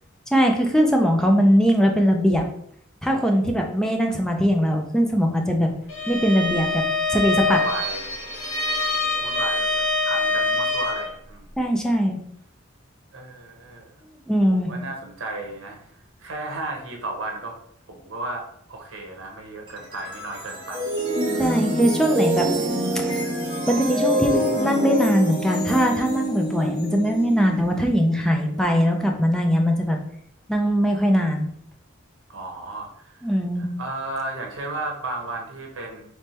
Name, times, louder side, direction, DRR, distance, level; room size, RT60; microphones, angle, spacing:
voice 1, 0.3-2.4 3.0-5.7 6.1-6.8 7.1-7.6 11.6-12.2 14.3-14.7 21.4-22.5 22.9-23.2 23.6-30.0 30.5-31.5 33.2-33.7, equal, 5° left, 2 dB, 0.5 m, -21 dB
Bowed string instrument, 5.9-11.2, left 3 dB, 75° left, 1.1 m, -24 dB
voice 2, 7.5-8.2 9.2-11.5 13.1-13.9 14.6-15.8 16.2-17.5 17.9-20.9 32.3-33.3 33.6-36.0, right 2 dB, 85° right, 1 dB, 1.0 m, -34 dB
sound 1, 19.7-28.9, equal, 25° right, 1.1 m, -26 dB
3.5 x 3.1 x 4.2 m, 0.67 s
head